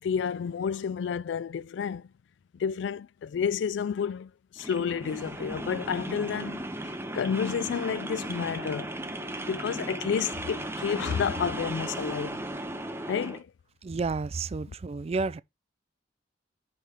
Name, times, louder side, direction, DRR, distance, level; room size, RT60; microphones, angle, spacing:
voice 1, 0.0-2.1 2.5-6.6 7.1-9.0 9.4-12.4 13.1-13.5 14.7-14.8, left 7 dB, 70° left, 0.3 m, -30 dB
sound 1, 4.6-13.4, right 1 dB, 15° right, 1.0 m, -36 dB
voice 2, 13.8-15.4, right 4 dB, 35° right, 0.4 m, -31 dB
5.5 x 5.4 x 4.7 m
head